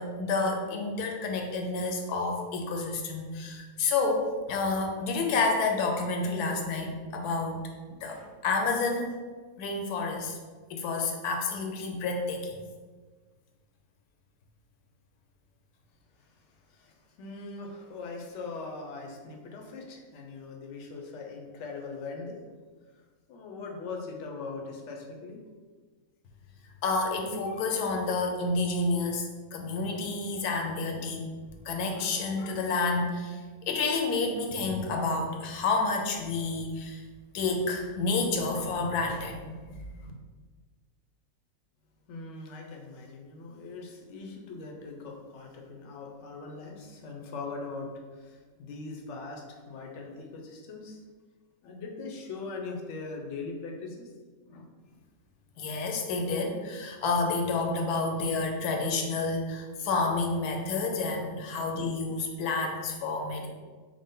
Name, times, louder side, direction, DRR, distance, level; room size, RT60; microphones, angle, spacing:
voice 1, 0.0-7.6 8.0-9.2 9.6-10.4 10.7-12.6 26.8-31.3 31.6-33.4 33.7-37.0 37.3-39.8 55.6-63.5, left 3 dB, 80° left, 2 dB, 1.1 m, -29 dB
voice 2, 16.7-22.4 22.9-23.0 23.3-25.4 42.1-51.0 51.6-54.1 54.5-55.0 61.5-61.7, left 3 dB, 65° left, 1 dB, 0.8 m, -41 dB
5.0 x 2.1 x 3.7 m, 1.4 s
omnidirectional pair, 1.6 m